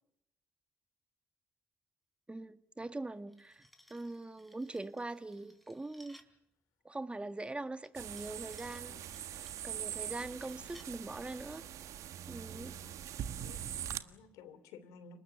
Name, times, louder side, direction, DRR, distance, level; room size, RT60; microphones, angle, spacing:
voice 1, 2.3-6.2 6.9-9.4 9.6-11.7 12.3-12.7, right 2 dB, 20° right, 1.6 m, -42 dB
sound 1, 3.0-6.4 7.8-10.9, equal, ahead, 3.9 m, -63 dB
sound 2, 7.9-14.0, right 10 dB, 65° right, 1.4 m, -43 dB
voice 2, 12.5-13.0 13.3-15.2, left 5 dB, 75° left, 3.0 m, -55 dB
30.0 x 20.0 x 7.9 m
hypercardioid pair, 50°, 6 cm